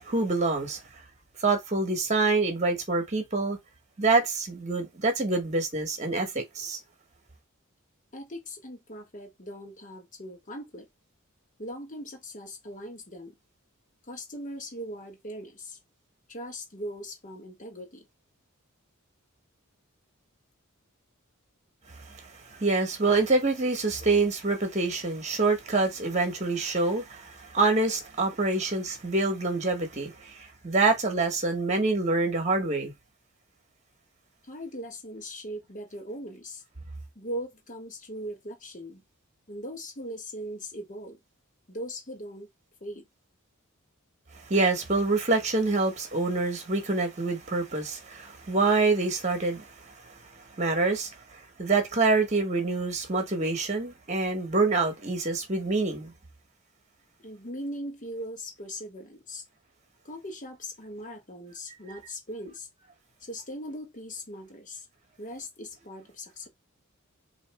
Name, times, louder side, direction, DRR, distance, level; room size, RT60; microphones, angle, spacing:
voice 1, 0.1-0.8 1.4-3.6 4.0-6.8 22.5-30.4 30.6-32.9 44.5-49.7 50.6-51.1 51.6-56.1, right 3 dB, 35° right, 1.2 m, -26 dB
voice 2, 8.1-10.9 11.6-13.3 14.1-15.8 16.3-18.0 24.1-24.2 34.5-36.6 37.1-39.0 39.5-41.2 41.7-42.5 42.8-43.1 57.2-59.4 60.0-62.7 63.3-64.8 65.2-66.5, equal, 35° left, 1.3 m, -39 dB
4.1 x 2.8 x 3.3 m
head